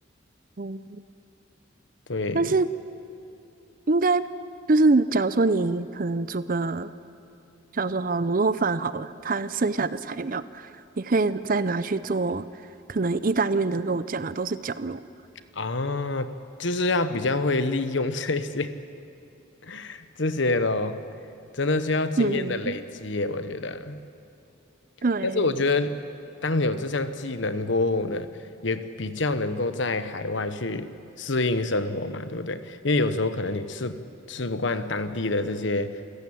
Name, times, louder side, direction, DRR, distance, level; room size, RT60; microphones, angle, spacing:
voice 1, 0.6-1.0 2.3-2.7 3.9-4.2 4.7-6.9 7.7-10.7 11.0-12.5 12.9-15.0 22.2-22.7 25.0-25.5, right 3 dB, 45° right, 15 dB, 0.6 m, -25 dB
voice 2, 2.1-2.5 15.5-16.3 16.6-18.8 19.6-21.0 21.5-24.0 25.2-26.0 26.4-28.3 28.6-34.0 34.3-36.1, left 2 dB, 65° left, 11 dB, 1.1 m, -27 dB
28.5 x 15.0 x 8.8 m, 2.9 s
head